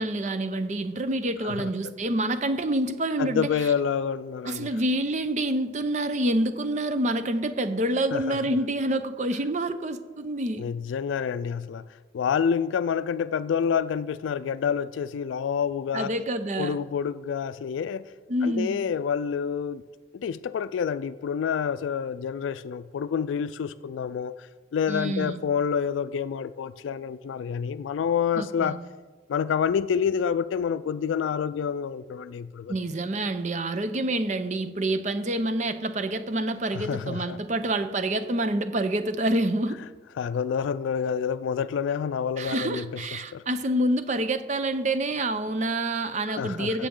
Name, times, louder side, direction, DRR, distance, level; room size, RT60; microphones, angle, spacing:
voice 1, 0.0-3.5 4.4-10.7 15.9-16.8 18.3-18.8 24.9-25.4 28.3-28.8 32.7-39.8 42.4-46.9, right 1 dB, 40° right, 0.6 m, -27 dB
voice 2, 3.2-4.7 8.1-8.4 10.6-11.8 12.1-16.1 16.6-18.1 18.4-19.8 20.1-28.8 29.3-32.7 36.7-37.4 40.2-43.0 43.3-43.4 46.4-46.9, left 7 dB, 90° left, 0.3 m, -28 dB
15.5 x 7.2 x 3.8 m
head